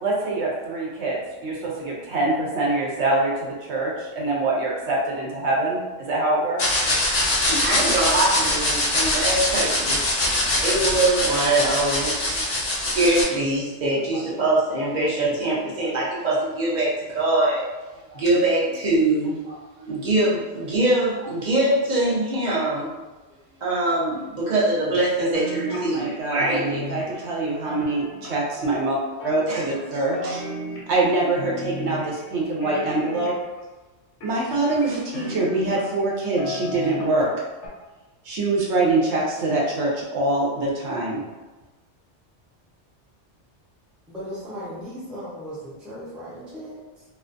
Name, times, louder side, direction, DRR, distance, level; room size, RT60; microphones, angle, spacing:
voice 1, 0.0-6.6 25.7-30.4 30.9-33.4 34.2-37.3 38.2-41.2, right 2 dB, 75° right, -3 dB, 0.9 m, -24 dB
sound 1, 6.6-13.2, left 1 dB, 50° left, 0.5 m, -23 dB
voice 2, 7.3-10.0 10.6-12.4 12.7-17.7 18.1-22.9 23.6-26.7 29.5-29.7, right 2 dB, 45° right, -6 dB, 0.7 m, -23 dB
sound 2, 25.3-26.1 26.4-28.6 29.2-29.9 30.1-31.1 31.3-32.3 32.6-33.6 34.2-36.0 36.4-37.3 37.6-37.7, left 1 dB, 70° left, 0.9 m, -34 dB
voice 3, 44.1-47.0, equal, ahead, -9 dB, 0.5 m, -37 dB
2.4 x 2.2 x 2.5 m, 1.2 s
omnidirectional pair, 1.2 m